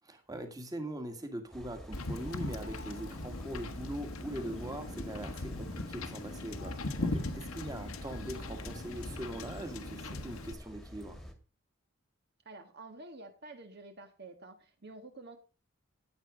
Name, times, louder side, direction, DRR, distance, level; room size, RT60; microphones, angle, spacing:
voice 1, 0.1-11.2, right 1 dB, 15° right, 6 dB, 2.0 m, -42 dB
sound 1, 1.5-11.3, equal, ahead, 1.9 m, -46 dB
Wind / Boat Water vehicle, 1.9-10.5, left 2 dB, 80° left, 1.5 m, -40 dB
voice 2, 12.4-15.4, right 2 dB, 50° right, 6 dB, 1.7 m, -49 dB
15.0 x 8.9 x 5.1 m, 0.37 s
head